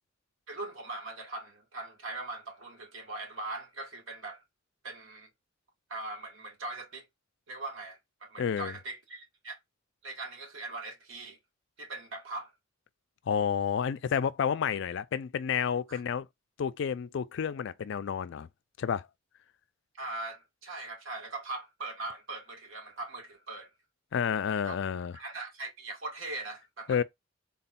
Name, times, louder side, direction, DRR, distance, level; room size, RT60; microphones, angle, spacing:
voice 1, 0.5-4.4 4.8-5.3 5.9-7.0 7.5-9.6 10.0-11.4 11.8-12.5 15.9-16.0 20.0-23.7 24.6-24.7 25.1-27.0, right 2 dB, 70° right, 1.5 m, -40 dB
voice 2, 8.4-8.7 13.3-16.3 16.6-18.5 18.8-19.0 24.1-25.1 26.9-27.0, left 7 dB, 60° left, 0.3 m, -30 dB
3.7 x 2.3 x 4.1 m
head